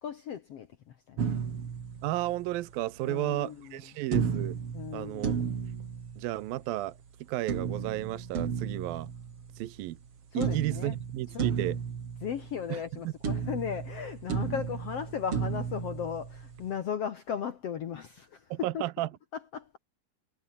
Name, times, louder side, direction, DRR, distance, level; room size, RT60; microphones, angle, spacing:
voice 1, 0.0-1.3 3.0-3.8 4.7-5.5 10.3-11.0 11.3-11.5 12.2-18.8 19.3-19.8, left 8 dB, 60° left, 1.6 m, -36 dB
sound 1, 1.2-2.7 4.1-6.7 7.5-10.1 10.4-13.0 13.2-16.7, right 6 dB, 40° right, 3.1 m, -34 dB
voice 2, 2.0-4.6 4.9-5.3 6.2-6.9 7.3-9.1 9.6-10.0 10.3-11.8 12.7-12.8 18.5-19.1, right 16 dB, 75° right, 2.6 m, -33 dB
omnidirectional pair, 4.3 m